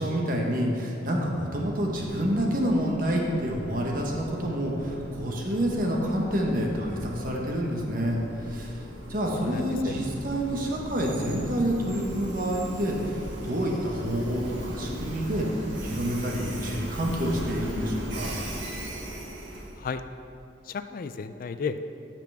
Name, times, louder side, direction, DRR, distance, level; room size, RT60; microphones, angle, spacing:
voice 1, 0.0-8.2 8.4-8.8 9.1-13.2 13.4-15.5 15.8-18.4, equal, 50° right, -1 dB, 1.3 m, -28 dB
Train, 1.3-19.8, right 1 dB, 90° right, 1.5 m, -39 dB
voice 2, 9.4-9.9 19.8-20.0 20.6-21.8, left 5 dB, 50° left, 10 dB, 0.3 m, -33 dB
14.5 x 5.9 x 3.5 m, 2.7 s
head